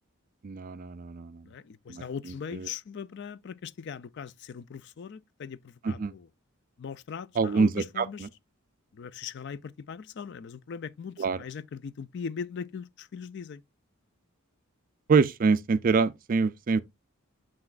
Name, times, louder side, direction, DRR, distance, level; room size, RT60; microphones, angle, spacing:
voice 1, 0.4-1.4 1.9-2.0 2.5-2.7 5.8-6.1 7.4-8.3 11.2-11.4 15.1-16.8, right 4 dB, 40° right, 0.4 m, -25 dB
voice 2, 1.4-6.3 6.8-8.3 8.9-13.6, left 6 dB, 55° left, 0.4 m, -40 dB
7.6 x 5.9 x 2.4 m
head